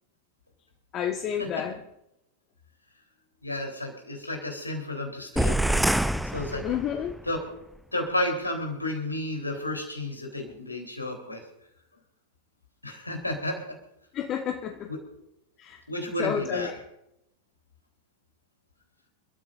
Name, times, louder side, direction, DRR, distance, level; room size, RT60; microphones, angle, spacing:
voice 1, 0.9-1.8 6.6-7.2 14.1-14.9 15.6-15.8 16.2-16.8, left 9 dB, 35° left, 4 dB, 1.2 m, -30 dB
voice 2, 3.4-5.6 6.3-6.6 7.3-7.4 7.9-11.4 12.8-13.6 15.9-16.7, left 1 dB, 85° left, 2 dB, 3.7 m, -31 dB
sound 1, 5.4-7.2, right 1 dB, ahead, 0.5 m, -26 dB
28.5 x 13.5 x 2.6 m, 0.84 s
figure-of-eight pair, 90°, 0 cm